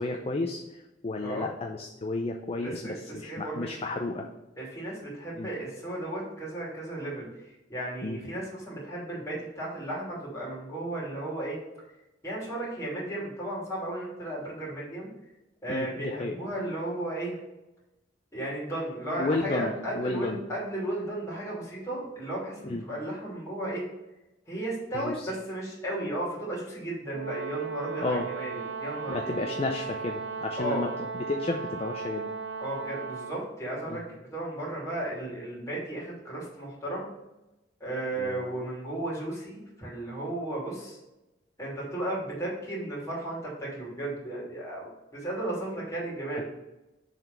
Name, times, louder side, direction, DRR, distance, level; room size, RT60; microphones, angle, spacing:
voice 1, 0.0-4.3 5.4-5.5 8.0-8.2 15.7-16.4 19.2-20.4 22.6-22.8 24.9-25.3 28.0-28.3 29.1-30.9 31.1-32.3 33.9-34.0 38.2-38.7 46.4-46.5, left 2 dB, 35° left, 3 dB, 0.6 m, -32 dB
voice 2, 2.6-3.7 4.6-7.3 7.7-11.6 12.2-15.1 15.6-17.3 18.3-23.8 24.5-28.5 28.8-29.4 30.6-30.9 32.6-37.1 37.8-41.0 41.6-46.4, right 1 dB, 15° left, -6 dB, 3.0 m, -34 dB
Brass instrument, 27.1-33.5, right 5 dB, 80° right, 0.6 m, -36 dB
7.5 x 4.1 x 6.8 m, 0.99 s
head